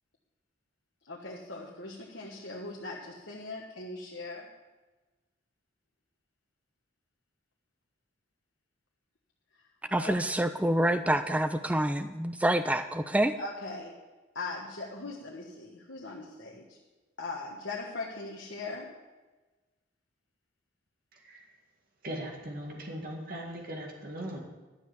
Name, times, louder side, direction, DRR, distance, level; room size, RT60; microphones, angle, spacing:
voice 1, 1.1-4.5 9.9-10.2 13.4-14.0 14.3-16.8 17.2-19.0, left 3 dB, 60° left, -2 dB, 1.5 m, -40 dB
voice 2, 9.9-13.3, right 1 dB, 5° right, 9 dB, 0.4 m, -27 dB
voice 3, 22.0-24.4, right 1 dB, 45° right, -1 dB, 2.1 m, -39 dB
12.0 x 7.2 x 8.1 m, 1.2 s
head